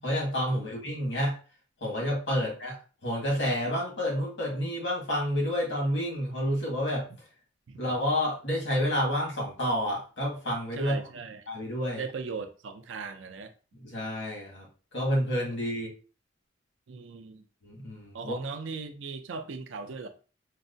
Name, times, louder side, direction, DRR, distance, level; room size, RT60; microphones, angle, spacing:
voice 1, 0.0-1.3 1.8-2.7 3.0-7.0 7.8-10.9 11.5-12.0 13.8-15.9 17.6-18.4, equal, 75° left, 1.7 m, -29 dB
voice 2, 10.7-11.5 12.0-13.5 16.9-17.5 18.1-20.1, right 4 dB, 90° right, 0.5 m, -38 dB
4.6 x 2.1 x 2.6 m
head